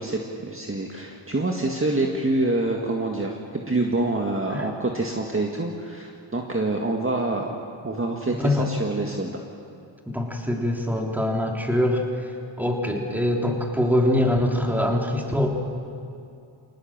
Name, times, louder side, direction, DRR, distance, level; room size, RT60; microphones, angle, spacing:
voice 1, 0.0-9.4, right 2 dB, 25° right, 1 dB, 2.0 m, -26 dB
voice 2, 8.3-8.7 10.1-12.0 12.6-15.5, left 1 dB, 5° right, 1 dB, 3.4 m, -23 dB
25.5 x 19.0 x 7.5 m, 2.5 s
cardioid pair, 75°, 50 cm